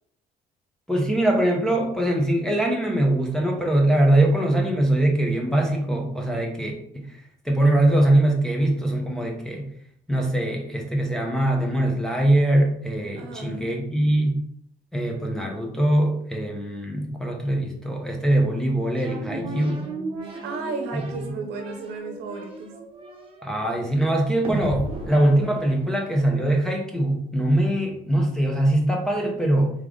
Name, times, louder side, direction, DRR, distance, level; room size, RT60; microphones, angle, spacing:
voice 1, 0.9-6.7 7.1-7.2 7.4-9.6 10.1-14.3 14.9-19.8 23.4-29.7, right 1 dB, 5° left, -1 dB, 0.8 m, -22 dB
voice 2, 13.2-13.7 20.2-22.7, right 3 dB, 85° right, 4 dB, 0.9 m, -34 dB
sound 1, 19.0-26.5, right 2 dB, 35° right, 1.0 m, -35 dB
3.6 x 3.3 x 3.7 m, 0.66 s
cardioid pair, 110°, 17 cm